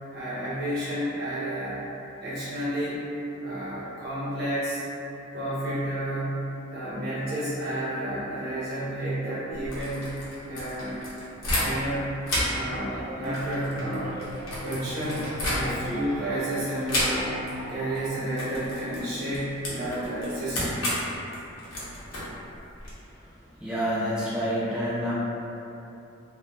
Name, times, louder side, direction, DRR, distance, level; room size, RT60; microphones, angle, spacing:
voice 1, 0.1-1.8 2.2-3.1 3.4-4.8 5.3-10.1 10.4-10.9 11.6-12.1 12.5-14.2 14.6-17.3 17.7-20.8, right 1 dB, 50° right, -10 dB, 0.9 m, -31 dB
sound 1, 9.5-12.0 12.2-16.0 16.9-17.6 17.8-18.0 18.3-22.9, left 1 dB, 70° left, 0.7 m, -32 dB
sound 2, 12.9-18.1, equal, 85° right, 0.3 m, -39 dB
voice 2, 23.6-25.1, equal, 5° right, -10 dB, 0.5 m, -27 dB
2.7 x 2.1 x 2.3 m, 2.8 s
head